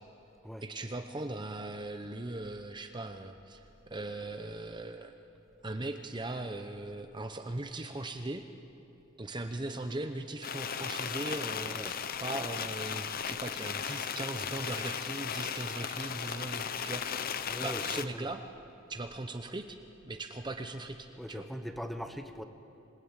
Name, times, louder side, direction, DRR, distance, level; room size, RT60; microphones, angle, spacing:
voice 1, 0.6-5.1 5.6-8.4 9.2-17.3 17.6-18.4 18.9-19.8 20.0-21.5, right 2 dB, 20° right, 6 dB, 0.8 m, -39 dB
sound 1, 10.4-18.0, left 7 dB, 45° left, 0.8 m, -36 dB
voice 2, 11.7-12.0 17.5-18.3 21.2-22.4, equal, ahead, 7 dB, 1.0 m, -41 dB
27.5 x 18.0 x 9.0 m, 2.8 s
head